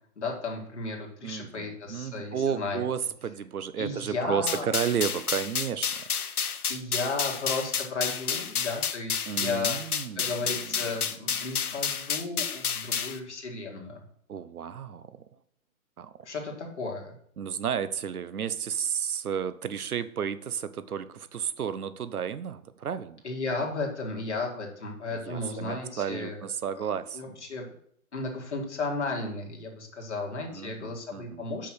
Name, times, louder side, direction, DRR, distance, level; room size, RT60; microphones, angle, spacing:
voice 1, 0.2-2.8 3.8-4.7 6.7-9.8 10.2-14.0 16.2-17.1 23.2-26.4 26.7-27.7 28.1-31.7, left 3 dB, 50° left, 0 dB, 2.1 m, -34 dB
voice 2, 1.2-6.1 9.3-10.8 14.3-15.2 16.0-16.3 17.4-23.2 25.1-27.2 30.5-31.5, right 8 dB, 85° right, 14 dB, 0.8 m, -32 dB
sound 1, 4.5-13.2, left 7 dB, 85° left, 1.0 m, -30 dB
6.1 x 5.8 x 6.2 m, 0.67 s
hypercardioid pair, 180°, 43 cm